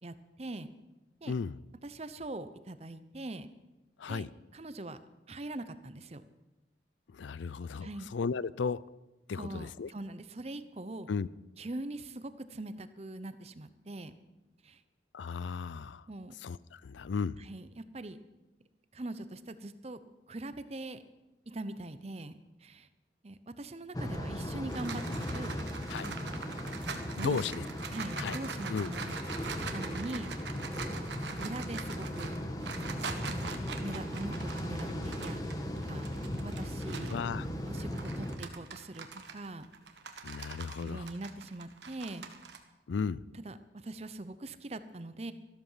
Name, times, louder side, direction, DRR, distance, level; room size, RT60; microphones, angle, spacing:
voice 1, 0.0-0.7 1.2-1.3 1.8-3.5 4.1-5.0 5.3-6.2 7.8-8.1 9.4-11.1 11.6-14.2 14.6-14.8 16.1-16.3 17.4-18.2 18.9-20.0 20.3-21.0 21.5-22.9 23.2-25.5 26.0-26.4 26.7-26.8 27.2-29.4 29.7-30.3 30.9-31.1 31.4-32.4 32.7-35.4 35.8-36.1 36.4-37.2 37.6-39.7 40.8-42.2 43.4-45.3, right 2 dB, 35° right, 12 dB, 0.7 m, -42 dB
voice 2, 1.3-1.6 4.0-4.3 7.1-8.8 9.3-9.9 11.1-11.3 15.1-16.1 16.4-17.4 25.9-26.1 27.2-27.6 28.2-28.4 28.7-28.9 37.1-37.5 40.2-41.1 42.9-43.2, left 5 dB, 85° left, 20 dB, 0.4 m, -35 dB
sound 1, 23.9-38.4, equal, 20° left, 1.2 m, -37 dB
sound 2, 24.3-37.2 37.7-42.6, right 5 dB, 75° right, 1.4 m, -43 dB
14.0 x 13.0 x 5.7 m, 1.0 s
head